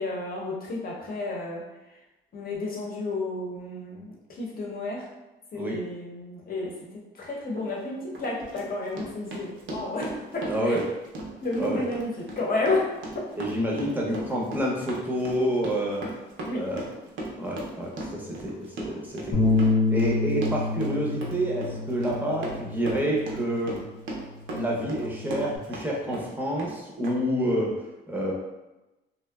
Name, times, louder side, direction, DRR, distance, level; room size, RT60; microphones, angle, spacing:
voice 1, 0.0-1.6 2.3-5.0 5.5-6.7 7.1-10.8 11.4-12.9 16.5-16.6, left 2 dB, 50° left, -3 dB, 0.7 m, -31 dB
Run, 7.5-7.7 8.1-25.9 26.1-26.7 27.0-27.1, right 1 dB, 75° right, 0.6 m, -37 dB
voice 2, 10.5-10.8 11.6-11.8 13.4-16.1 16.5-16.8 17.4-23.8 24.5-28.3, equal, 10° right, -3 dB, 0.6 m, -28 dB
Bass guitar, 19.3-23.8 24.2-25.6, left 3 dB, 85° left, 0.6 m, -28 dB
2.6 x 2.1 x 2.2 m, 1.0 s
cardioid pair, 90°, 20 cm